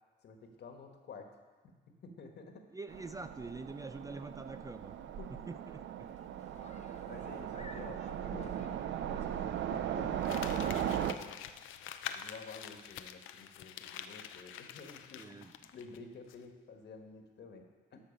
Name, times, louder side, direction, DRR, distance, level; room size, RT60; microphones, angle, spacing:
voice 1, 0.2-2.7 5.2-5.3 7.0-8.6 9.0-11.4 12.1-15.4 15.7-18.0, left 4 dB, 60° left, 4 dB, 1.5 m, -51 dB
voice 2, 2.7-4.9 5.5-6.1 15.2-15.5, right 3 dB, 15° right, 10 dB, 0.4 m, -45 dB
Train, 2.9-11.1, right 10 dB, 70° right, 0.6 m, -38 dB
sound 1, 6.0-11.1, left 4 dB, 35° left, 0.8 m, -55 dB
Crumpling crinkling, 10.2-16.0 16.3-16.4, left 9 dB, 80° left, 0.6 m, -46 dB
13.0 x 6.0 x 5.3 m, 1.3 s
cardioid pair, 90°, 20 cm